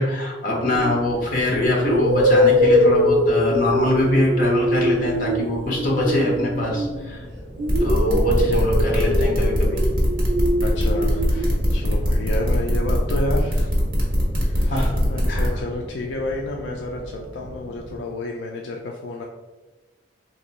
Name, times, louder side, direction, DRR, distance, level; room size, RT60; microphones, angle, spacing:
voice 1, 0.0-7.2 7.8-9.8 14.6-15.0 15.3-15.5, left 1 dB, 45° left, -2 dB, 1.0 m, -23 dB
sound 1, 0.7-18.0, equal, 25° left, 0.9 m, -40 dB
sound 2, 0.8-1.0 1.8-7.2 7.6-11.5, left 1 dB, 60° right, 0.7 m, -22 dB
sound 3, 7.7-15.5, equal, 45° right, 1.1 m, -21 dB
voice 2, 10.6-13.7 14.4-19.2, left 2 dB, 75° left, 0 dB, 0.4 m, -30 dB
2.9 x 2.6 x 4.2 m, 1.2 s
head